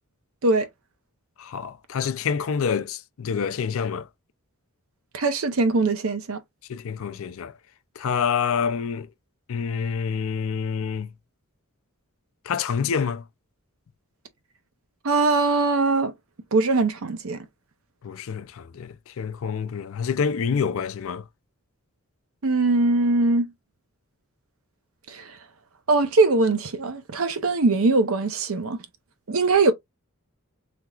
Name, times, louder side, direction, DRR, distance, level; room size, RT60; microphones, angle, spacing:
voice 1, 1.4-4.1 6.7-7.5 8.0-9.1 9.5-11.1 12.5-13.2 18.0-21.2, left 6 dB, 65° left, 0.4 m, -27 dB
voice 2, 5.1-6.4 15.0-16.1 16.5-17.4 22.4-23.5 25.1-25.3 25.9-28.8 29.3-29.7, right 3 dB, 70° right, 0.7 m, -21 dB
3.5 x 2.8 x 2.3 m
head